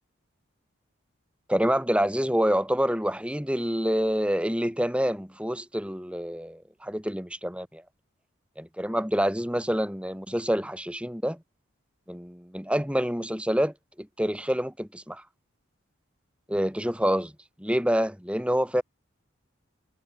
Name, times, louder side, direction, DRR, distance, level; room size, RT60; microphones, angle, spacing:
voice 1, 1.5-7.8 8.6-11.4 12.1-15.2 16.5-17.3 17.6-18.8, equal, 5° right, 7.2 m, -27 dB
head